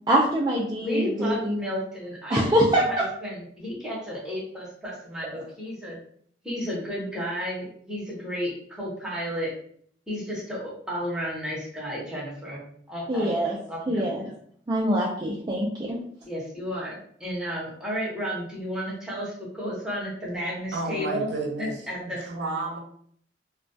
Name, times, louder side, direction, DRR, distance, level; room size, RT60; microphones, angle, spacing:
voice 1, 0.1-1.6 2.3-2.8 13.1-13.6 13.9-14.3 14.7-16.0, equal, 25° right, -4 dB, 0.3 m, -24 dB
voice 2, 0.8-2.4 2.7-6.0 6.4-9.5 10.1-13.3 13.7-14.1 16.3-21.3 21.6-22.2, equal, 5° right, -6 dB, 0.7 m, -32 dB
voice 3, 20.7-22.8, right 3 dB, 75° right, 0 dB, 0.6 m, -32 dB
2.2 x 2.2 x 2.5 m, 0.62 s
head